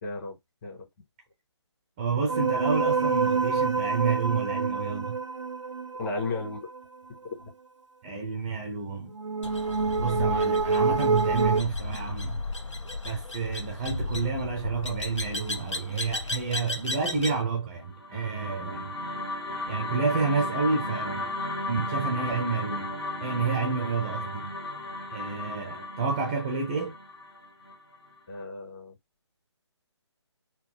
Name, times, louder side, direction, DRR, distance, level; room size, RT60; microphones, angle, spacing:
voice 1, 0.0-0.4 0.6-0.9 6.0-6.7 28.3-28.9, left 3 dB, 40° left, 1.9 m, -34 dB
voice 2, 2.0-5.2 8.0-9.1 10.0-12.4 13.0-18.9 19.7-21.4 21.7-22.9 23.2-24.5 25.1-26.9, right 5 dB, 15° right, 0.4 m, -29 dB
sound 1, 2.3-6.8 9.1-11.6, right 4 dB, 85° right, 0.5 m, -27 dB
sound 2, 9.4-17.4, left 2 dB, 85° left, 1.0 m, -34 dB
sound 3, 17.8-28.1, left 1 dB, 60° left, 1.4 m, -35 dB
3.8 x 2.2 x 3.4 m
figure-of-eight pair, 145°, 15 cm